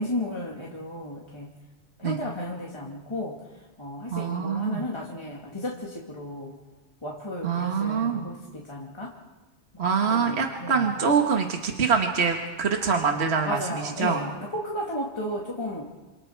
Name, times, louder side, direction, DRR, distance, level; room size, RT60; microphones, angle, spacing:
voice 1, 0.0-1.5 2.0-3.4 3.8-6.6 7.0-9.2 9.7-9.8 10.1-11.0 13.4-15.9, left 1 dB, 25° left, -3 dB, 2.5 m, -34 dB
voice 2, 4.1-4.8 7.4-8.3 9.8-14.2, right 6 dB, 65° right, 3 dB, 1.7 m, -25 dB
28.0 x 27.5 x 4.6 m, 1.2 s
omnidirectional pair, 1.2 m